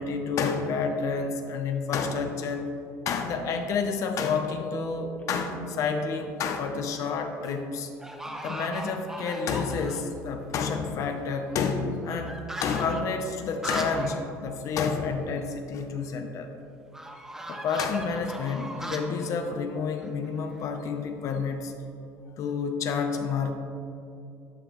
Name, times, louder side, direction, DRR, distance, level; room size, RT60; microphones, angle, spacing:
voice 1, 0.0-2.7 3.1-7.9 8.4-12.4 12.6-16.5 17.5-21.7 22.4-23.5, left 5 dB, 55° left, 6 dB, 0.6 m, -29 dB
Telephone, 4.5-5.2 5.8-5.9 7.6-7.8 8.2-8.3 13.6-14.5 21.6-21.8, left 1 dB, 25° left, 1.2 m, -47 dB
sound 1, 5.7-6.2 6.7-7.2 7.4-7.5 8.0-10.2 10.5-10.6 10.8-14.2 14.5-14.6 14.9-15.0 16.9-20.7, right 1 dB, 5° right, 0.7 m, -39 dB
11.0 x 5.1 x 3.0 m, 2.7 s
cardioid pair, 115°, 7 cm